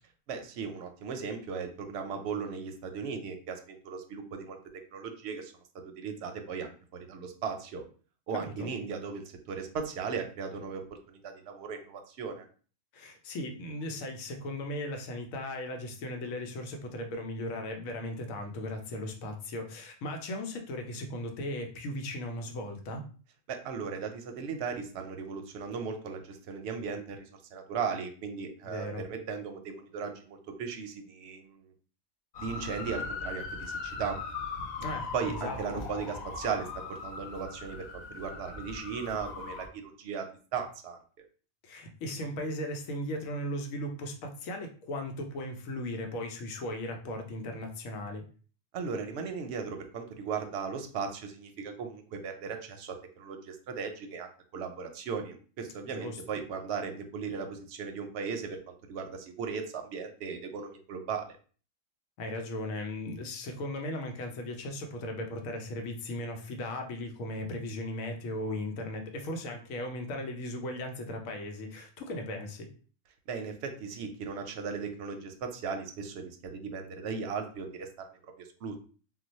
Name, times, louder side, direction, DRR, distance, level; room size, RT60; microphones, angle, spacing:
voice 1, 0.3-4.6 4.9-6.7 7.1-7.8 8.3-12.5 23.5-31.7 32.4-34.2 35.1-40.3 40.5-41.0 48.7-61.4 73.3-78.1 78.4-78.8, right 5 dB, 65° right, 5 dB, 0.7 m, -37 dB
voice 2, 12.9-23.0 28.7-29.1 34.8-35.6 41.6-48.2 55.9-56.2 62.2-72.7, left 1 dB, 85° left, 4 dB, 1.0 m, -37 dB
sound 1, 32.3-39.7, left 4 dB, 50° left, 0.5 m, -39 dB
2.4 x 2.2 x 4.0 m, 0.40 s
omnidirectional pair, 1.4 m